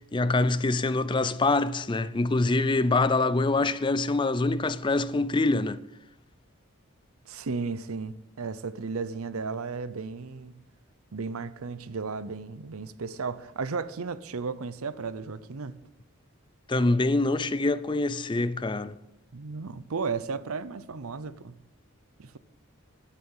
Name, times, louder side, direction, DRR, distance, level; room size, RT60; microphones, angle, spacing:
voice 1, 0.1-5.8 16.7-19.0, left 2 dB, 20° left, 0.4 m, -25 dB
voice 2, 7.3-10.5 11.1-15.8 19.3-21.5 22.2-22.4, right 4 dB, 85° right, 0.7 m, -34 dB
12.5 x 11.5 x 5.6 m
head